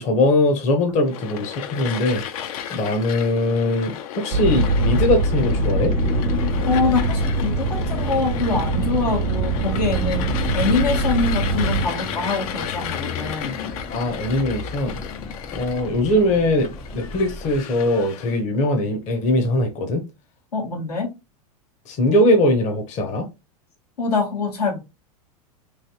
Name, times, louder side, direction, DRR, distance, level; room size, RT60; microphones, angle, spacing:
voice 1, 0.0-2.2 2.7-5.9 13.9-15.0 15.5-20.0 21.9-23.3, left 1 dB, 40° left, 0.8 m, -21 dB
sound 1, 1.0-18.3, left 9 dB, 65° left, 0.5 m, -34 dB
sound 2, 4.3-11.9, right 2 dB, 70° right, 0.4 m, -23 dB
sound 3, 5.4-17.6, left 4 dB, 15° left, 0.4 m, -33 dB
voice 2, 6.7-10.2 10.5-13.6 20.5-21.1 24.0-24.8, left 4 dB, 90° left, 1.5 m, -24 dB
3.2 x 2.7 x 2.8 m
hypercardioid pair, 110°, 20 cm